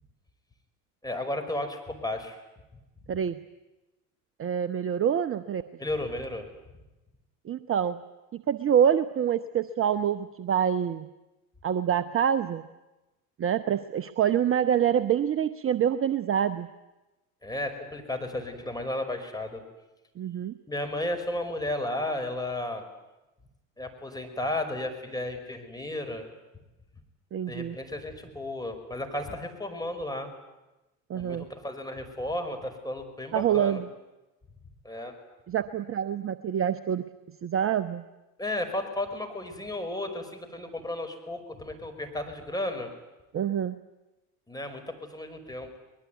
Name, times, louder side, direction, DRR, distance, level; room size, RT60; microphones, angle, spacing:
voice 1, 1.0-2.4 3.1-3.2 5.8-6.5 17.4-19.6 20.7-22.8 23.8-26.3 27.5-30.3 31.1-33.8 34.8-35.1 38.4-42.9 44.5-45.7, left 1 dB, 10° left, 5 dB, 5.3 m, -33 dB
voice 2, 3.1-3.4 4.4-5.6 7.4-8.0 8.3-11.1 11.6-12.6 13.4-16.7 20.2-20.5 27.3-27.8 31.1-31.5 33.3-33.9 35.5-37.0 37.4-38.0 43.3-43.8, right 9 dB, 30° right, 12 dB, 0.9 m, -26 dB
23.0 x 21.0 x 9.4 m, 1.0 s
hypercardioid pair, 70°, 45 cm